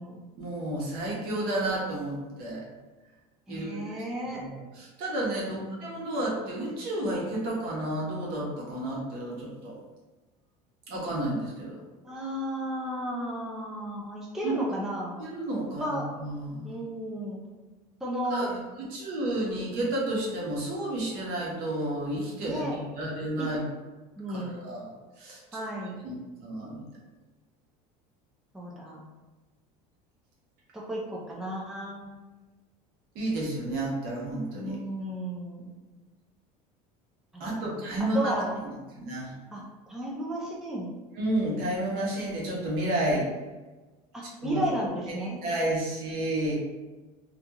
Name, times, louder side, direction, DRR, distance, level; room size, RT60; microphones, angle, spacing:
voice 1, 0.4-2.7 3.5-3.9 4.2-9.7 10.9-11.8 14.4-14.6 15.2-16.8 18.3-23.6 24.3-24.9 25.2-25.6 26.0-26.8 33.1-34.8 37.4-38.3 38.6-39.3 41.1-43.3 44.4-44.6 45.4-46.6, right 1 dB, 60° right, -3 dB, 0.9 m, -31 dB
voice 2, 3.5-4.4 5.5-6.0 12.0-15.2 15.8-16.0 16.6-17.4 18.0-18.5 22.5-22.7 23.4-23.5 24.2-24.6 25.5-26.0 28.5-29.0 30.7-32.1 34.6-35.8 37.3-37.7 38.1-38.5 39.5-39.6 39.9-40.9 44.1-45.4, right 1 dB, 5° right, -4 dB, 0.5 m, -33 dB
2.4 x 2.3 x 2.8 m, 1.2 s
supercardioid pair, 110°, 18 cm